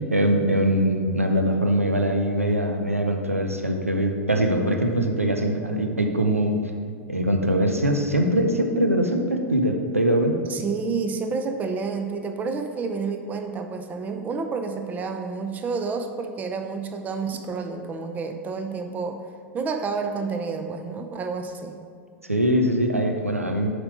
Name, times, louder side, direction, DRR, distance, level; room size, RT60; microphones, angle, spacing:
voice 1, 0.1-6.6 7.1-10.4 22.3-23.7, right 1 dB, 90° right, 4 dB, 0.6 m, -22 dB
voice 2, 10.5-19.2 19.5-21.8, right 4 dB, 20° right, 6 dB, 0.6 m, -29 dB
7.1 x 5.2 x 5.0 m, 2.2 s
figure-of-eight pair, 90°, 7 cm